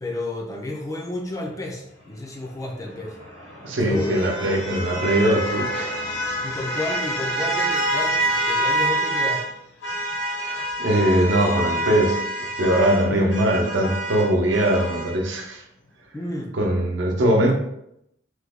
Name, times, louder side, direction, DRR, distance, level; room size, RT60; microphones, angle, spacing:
voice 1, 0.0-3.2 3.8-4.4 6.4-9.5 13.1-13.3 16.1-16.5, left 2 dB, 15° left, 0 dB, 0.3 m, -31 dB
sound 1, 2.9-9.5 9.8-15.2, right 1 dB, 60° left, 0.7 m, -27 dB
voice 2, 3.6-5.9 10.3-15.6 16.6-17.5, right 1 dB, 70° right, 1 dB, 0.6 m, -21 dB
3.1 x 2.1 x 3.4 m, 0.79 s
head